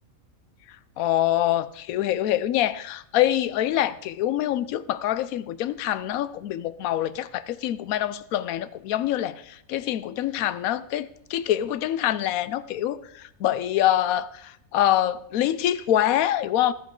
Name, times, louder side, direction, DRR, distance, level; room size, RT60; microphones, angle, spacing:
voice 1, 1.0-16.7, left 12 dB, 85° left, 1.0 m, -25 dB
12.5 x 9.8 x 3.7 m
omnidirectional pair, 1.4 m